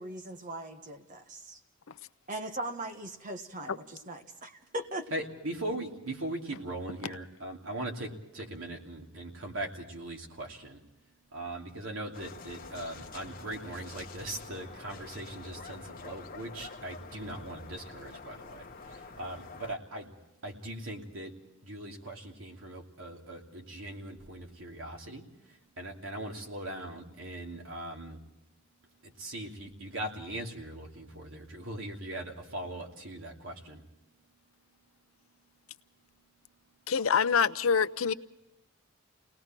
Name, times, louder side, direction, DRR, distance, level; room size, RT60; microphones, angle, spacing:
voice 1, 0.0-1.6 2.3-5.1, right 1 dB, 40° right, 5 dB, 1.5 m, -39 dB
voice 2, 5.1-10.8 11.3-20.1 20.4-21.4 21.6-28.2 29.0-33.8, right 1 dB, 70° right, 0 dB, 2.9 m, -40 dB
sound 1, 12.1-19.8, left 4 dB, 45° left, 1.2 m, -47 dB
voice 3, 36.9-38.1, left 6 dB, 80° left, 14 dB, 0.7 m, -25 dB
30.0 x 19.5 x 4.5 m, 0.92 s
head